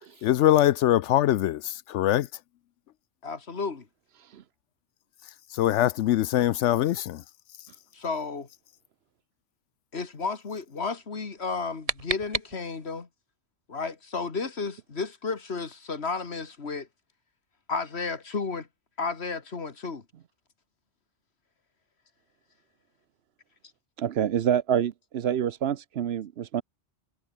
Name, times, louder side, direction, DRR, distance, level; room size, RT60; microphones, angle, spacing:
voice 1, 0.2-2.3 5.5-7.2, left 13 dB, 80° left, 0.9 m, -23 dB
voice 2, 3.2-3.9 7.9-8.5 9.9-13.1 13.7-16.9 17.7-18.7 19.0-20.0, left 4 dB, 65° left, 2.2 m, -32 dB
sound 1, 11.4-13.0, right 4 dB, 30° right, 1.3 m, -34 dB
voice 3, 24.0-26.6, right 9 dB, 65° right, 0.9 m, -27 dB
omnidirectional pair, 1.2 m